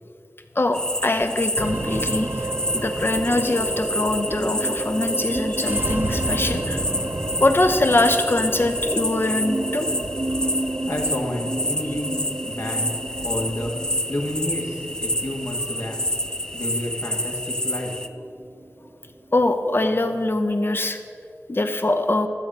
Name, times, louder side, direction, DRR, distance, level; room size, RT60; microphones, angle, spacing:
voice 1, 0.5-2.5 2.7-6.8 7.4-9.9 19.3-21.0 21.5-22.3, left 2 dB, 45° left, 7 dB, 0.8 m, -22 dB
sound 1, 0.7-18.1, left 1 dB, 15° left, 0.5 m, -29 dB
sound 2, 1.6-20.1, right 1 dB, 45° right, 0.7 m, -31 dB
voice 2, 10.9-12.9 13.2-13.7 14.1-16.0 16.5-17.9, left 1 dB, 65° left, 0 dB, 1.8 m, -30 dB
13.0 x 7.5 x 5.5 m, 2.4 s
wide cardioid pair, 55°, 5 cm